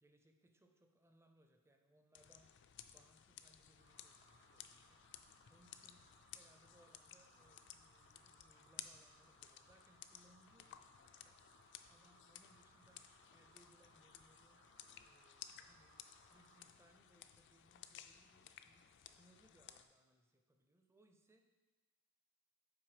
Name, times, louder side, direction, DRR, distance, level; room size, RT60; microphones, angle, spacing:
voice 1, 0.0-2.5 2.9-11.5 11.9-14.7 15.0-16.0 16.3-21.4, right 1 dB, 10° right, 4 dB, 0.4 m, -71 dB
sound 1, 2.1-19.8, left 10 dB, 55° left, 0.3 m, -58 dB
sound 2, 3.8-16.7, right 2 dB, 80° right, 1.7 m, -70 dB
6.0 x 4.4 x 4.8 m, 1.3 s
head